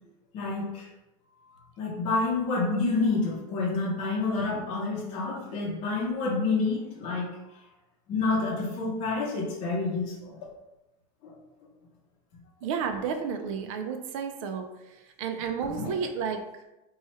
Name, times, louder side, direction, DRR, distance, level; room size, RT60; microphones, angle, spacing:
voice 1, 0.3-0.9 1.5-7.6 8.1-10.4 11.2-11.4 15.7-16.0, left 3 dB, 30° left, -5 dB, 0.7 m, -29 dB
voice 2, 12.6-16.6, right 6 dB, 65° right, 5 dB, 0.4 m, -32 dB
3.0 x 2.3 x 4.2 m, 0.97 s
supercardioid pair, 170°, 18 cm